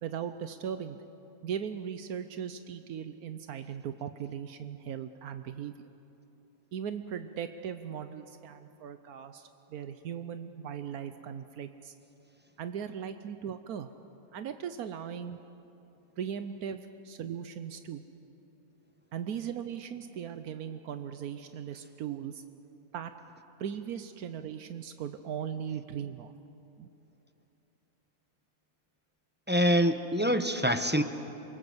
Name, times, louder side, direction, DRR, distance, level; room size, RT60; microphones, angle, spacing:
voice 1, 0.0-5.9 6.7-11.9 12.6-13.9 14.3-15.4 16.2-18.2 19.1-22.5 22.9-26.3 26.8-26.9, right 8 dB, 85° right, 10 dB, 1.3 m, -38 dB
voice 2, 29.5-31.0, equal, 10° right, 8 dB, 0.8 m, -25 dB
28.0 x 24.0 x 7.9 m, 2.9 s
omnidirectional pair, 1.5 m